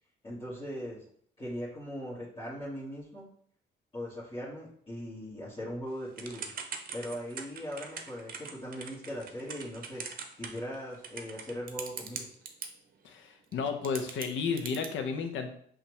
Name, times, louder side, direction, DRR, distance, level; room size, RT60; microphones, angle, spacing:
voice 1, 0.2-1.0 1.4-3.2 3.9-6.5 6.9-10.0 10.4-12.3, equal, 25° left, -11 dB, 1.7 m, -39 dB
Typing / Telephone, 6.2-12.7 13.5-13.6 13.8-14.9, right 6 dB, 45° right, 0.7 m, -41 dB
voice 2, 13.0-15.6, left 5 dB, 75° left, 6 dB, 0.7 m, -33 dB
5.5 x 2.5 x 3.2 m, 0.62 s
cardioid pair, 90°, 20 cm